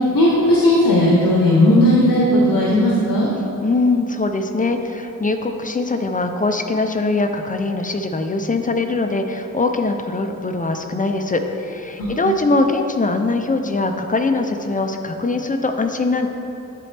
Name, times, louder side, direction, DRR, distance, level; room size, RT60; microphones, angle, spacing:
voice 1, 0.1-3.3 12.0-12.2, left 1 dB, 70° left, -4 dB, 0.9 m, -15 dB
voice 2, 3.6-16.3, left 3 dB, 25° left, 5 dB, 0.4 m, -22 dB
10.5 x 4.3 x 3.3 m, 2.9 s
wide cardioid pair, 105°, 34 cm